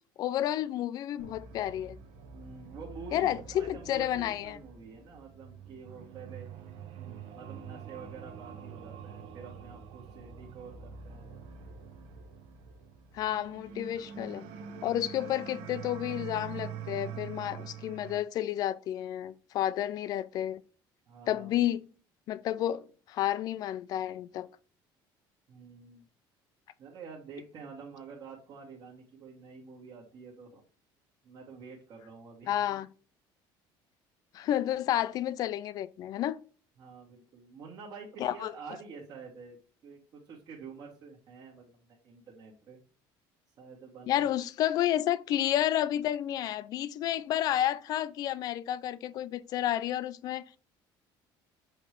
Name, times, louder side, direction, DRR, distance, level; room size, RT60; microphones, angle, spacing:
voice 1, 0.2-2.0 3.1-4.6 13.1-14.4 14.8-20.6 21.3-21.8 22.3-24.5 32.5-32.9 34.3-36.4 38.2-38.5 44.1-50.5, left 12 dB, 45° left, 0.4 m, -31 dB
sound 1, 1.2-18.2, right 6 dB, 70° right, 1.1 m, -45 dB
voice 2, 2.3-6.5 7.0-11.3 21.1-21.5 25.5-26.1 26.8-30.6 31.2-32.6 36.8-39.6 39.8-42.8 43.6-44.4, right 5 dB, 45° right, 1.8 m, -48 dB
7.6 x 3.2 x 5.0 m
cardioid pair, 180°, 9 cm